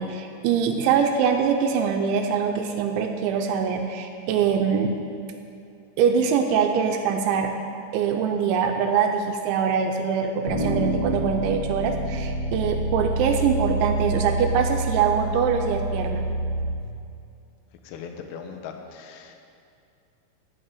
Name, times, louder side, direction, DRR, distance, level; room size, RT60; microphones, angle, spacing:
voice 1, 0.0-4.9 6.0-7.5 7.9-16.3, right 6 dB, 85° right, 4 dB, 2.8 m, -23 dB
sound 1, 10.5-16.7, right 1 dB, 30° left, 3.1 m, -27 dB
voice 2, 17.9-19.4, left 6 dB, 90° left, 5 dB, 3.6 m, -39 dB
13.5 x 5.4 x 9.1 m, 2.5 s
omnidirectional pair, 5.9 m